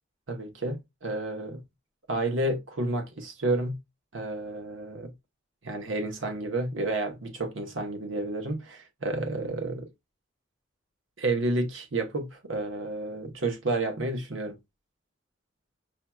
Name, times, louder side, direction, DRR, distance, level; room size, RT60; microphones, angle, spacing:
voice 1, 0.3-1.6 2.1-3.8 4.1-5.1 5.6-9.9 11.2-14.6, right 2 dB, 80° right, 1.1 m, -30 dB
5.7 x 2.7 x 2.3 m
head